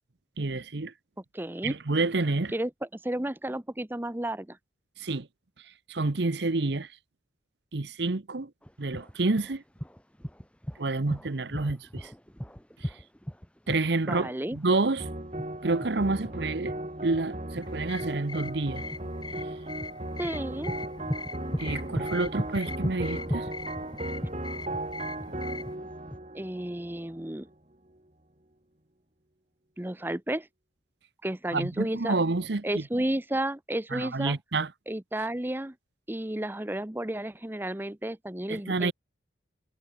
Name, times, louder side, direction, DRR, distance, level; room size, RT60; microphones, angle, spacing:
voice 1, 0.4-0.9 1.6-2.5 5.0-5.3 5.9-6.9 7.7-8.5 8.8-9.6 10.8-12.1 12.8-12.9 13.7-15.1 15.6-16.7 17.0-18.8 21.6-23.5 31.5-33.0 33.9-34.7 38.5-38.9, right 3 dB, 65° right, 0.9 m, -28 dB
voice 2, 1.3-1.7 2.5-2.7 3.0-4.6 14.1-14.6 20.2-20.7 26.3-27.5 29.8-30.5 31.2-32.2 32.6-34.4 34.9-35.7 36.1-38.9, right 1 dB, 10° right, 0.7 m, -32 dB
sound 1, 8.6-26.2, equal, 5° left, 3.4 m, -38 dB
sound 2, 15.0-27.5, right 1 dB, 35° right, 2.6 m, -37 dB
sound 3, 17.6-25.7, left 4 dB, 25° left, 4.3 m, -43 dB
head